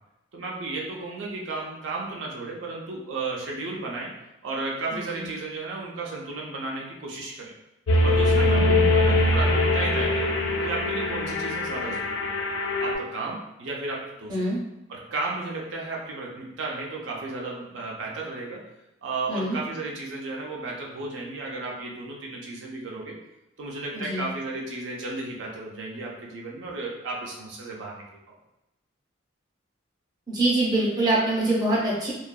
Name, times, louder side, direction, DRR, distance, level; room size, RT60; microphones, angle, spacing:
voice 1, 0.3-4.1 4.4-7.5 8.0-10.3 10.6-12.4 12.8-14.3 14.9-18.6 19.0-23.2 23.6-28.0, right 3 dB, 70° right, -2 dB, 0.4 m, -34 dB
voice 2, 4.9-5.3 8.7-8.8 14.3-14.6 19.3-19.6 23.9-24.3 30.3-32.1, right 2 dB, 20° right, -6 dB, 0.6 m, -25 dB
sound 1, 7.9-12.9, left 2 dB, 80° left, 0.4 m, -22 dB
2.6 x 2.3 x 2.2 m, 0.92 s
head